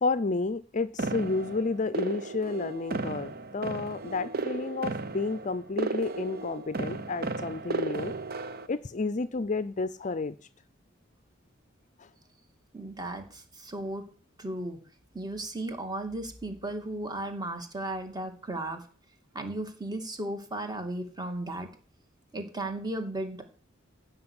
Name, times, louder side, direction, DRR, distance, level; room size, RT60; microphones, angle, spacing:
voice 1, 0.0-8.1 8.7-10.4 12.0-12.1, left 3 dB, 40° left, 15 dB, 0.6 m, -31 dB
sound 1, 1.0-8.7, right 3 dB, 50° right, 1.1 m, -34 dB
voice 2, 12.7-14.0 14.4-14.8 15.1-18.8 19.3-21.7 22.3-23.4, right 1 dB, 20° right, 5 dB, 2.5 m, -35 dB
15.5 x 6.1 x 8.8 m, 0.40 s
head